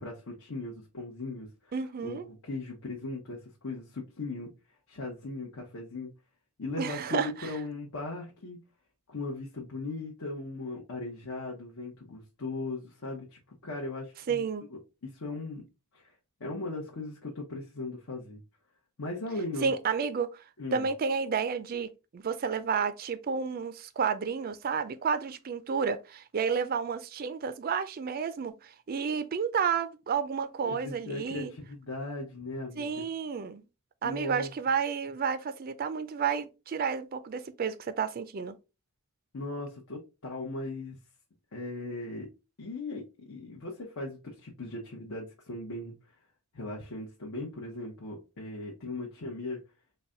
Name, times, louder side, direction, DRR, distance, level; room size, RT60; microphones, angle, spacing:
voice 1, 0.0-1.7 2.0-4.5 4.9-6.1 6.6-8.6 9.1-14.4 14.7-15.6 15.9-16.1 16.4-18.4 19.0-19.7 20.6-20.8 30.6-33.1 34.0-34.5 39.3-41.0 41.5-42.3 42.6-46.1 46.5-49.6, left 2 dB, 70° left, 0.9 m, -38 dB
voice 2, 1.7-2.2 6.8-7.5 14.3-14.6 19.6-20.3 20.7-31.5 32.8-33.6 34.0-38.6, right 6 dB, 40° right, 0.4 m, -31 dB
4.0 x 2.2 x 3.6 m
head